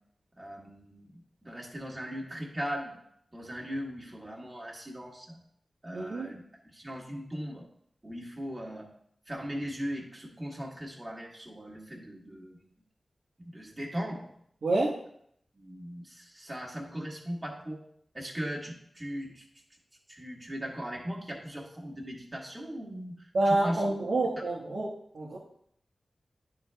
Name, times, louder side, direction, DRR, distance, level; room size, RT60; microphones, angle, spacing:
voice 1, 0.4-3.0 3.3-5.4 5.8-7.6 8.0-8.9 9.3-12.7 13.4-14.3 15.5-17.8 18.1-19.4 20.1-23.8, equal, 20° right, -2 dB, 1.5 m, -39 dB
voice 2, 5.9-6.3 14.6-15.0 23.3-25.4, right 2 dB, 80° right, -4 dB, 1.1 m, -28 dB
10.5 x 3.9 x 3.4 m, 0.69 s
wide cardioid pair, 75°, 0 cm